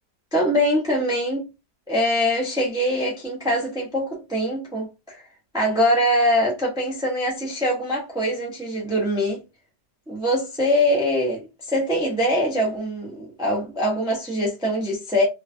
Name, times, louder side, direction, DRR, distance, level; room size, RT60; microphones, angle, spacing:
voice 1, 0.3-1.5 1.9-5.3 5.5-9.4 10.1-15.2, equal, 5° right, 0.4 m, -23 dB
3.0 x 2.2 x 2.6 m
omnidirectional pair, 1.8 m